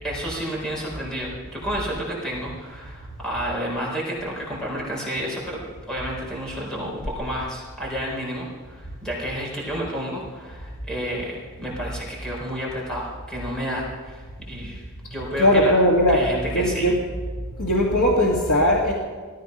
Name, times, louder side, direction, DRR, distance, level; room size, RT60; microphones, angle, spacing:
voice 1, 0.0-5.6 5.9-14.8 15.1-15.7 16.1-16.9, equal, 5° left, -4 dB, 4.3 m, -30 dB
voice 2, 15.4-16.2 16.5-16.9 17.6-18.9, equal, 85° left, -2 dB, 2.0 m, -19 dB
17.5 x 14.0 x 5.4 m, 1.5 s
head